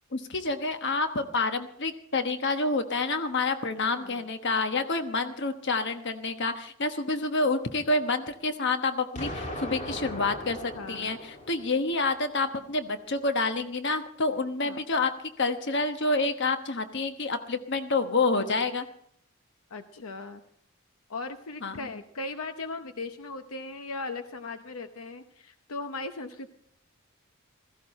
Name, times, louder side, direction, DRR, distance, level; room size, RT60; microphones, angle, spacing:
voice 1, 0.1-15.1 15.4-18.9 21.6-21.8, left 3 dB, 55° left, 8 dB, 1.2 m, -28 dB
voice 2, 4.0-4.3 9.9-10.1 10.7-11.2 14.6-14.8 19.7-20.4 21.1-26.5, left 3 dB, 80° left, 8 dB, 0.8 m, -38 dB
Explosion, 9.2-12.1, left 1 dB, 35° left, 2.3 m, -38 dB
16.0 x 15.0 x 4.3 m, 0.67 s
head